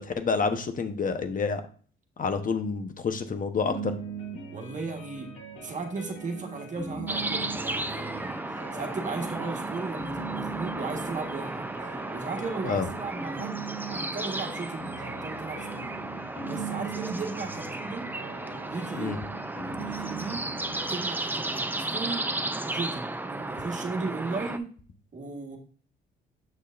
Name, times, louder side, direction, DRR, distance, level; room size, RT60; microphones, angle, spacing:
voice 1, 0.0-1.6 2.2-3.9 12.6-12.9 18.9-19.2, left 5 dB, 45° left, 8 dB, 1.0 m, -28 dB
sound 1, 3.6-21.0, right 4 dB, 90° left, 2.4 m, -40 dB
voice 2, 4.5-5.3 5.6-15.9 16.4-18.1 18.7-19.2 19.6-20.5 20.8-22.2 22.6-24.7 25.1-25.6, right 4 dB, 40° right, 3 dB, 1.5 m, -36 dB
sound 2, 7.1-24.6, right 2 dB, 10° right, 0.5 m, -34 dB
7.4 x 6.4 x 2.6 m, 0.42 s
cardioid pair, 90°, 20 cm